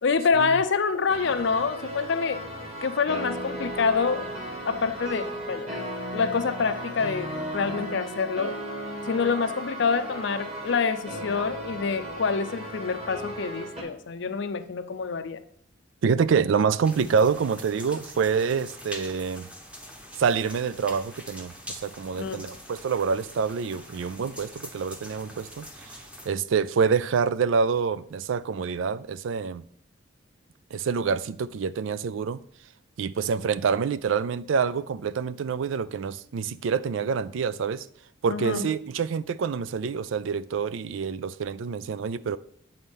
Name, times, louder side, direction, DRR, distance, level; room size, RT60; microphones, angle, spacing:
voice 1, 0.0-2.4 2.8-4.3 4.6-5.8 6.1-8.5 9.1-15.4 22.2-22.5 38.3-38.7, left 5 dB, 60° left, 0.5 m, -26 dB
sound 1, 1.1-13.8, equal, 30° right, 1.9 m, -35 dB
voice 2, 16.0-19.5 20.2-25.7 26.3-29.6 30.7-32.4 33.0-37.9 38.2-42.4, right 6 dB, 70° right, 0.4 m, -26 dB
sound 2, 16.8-26.3, equal, 5° right, 0.9 m, -44 dB
8.0 x 4.3 x 5.2 m
head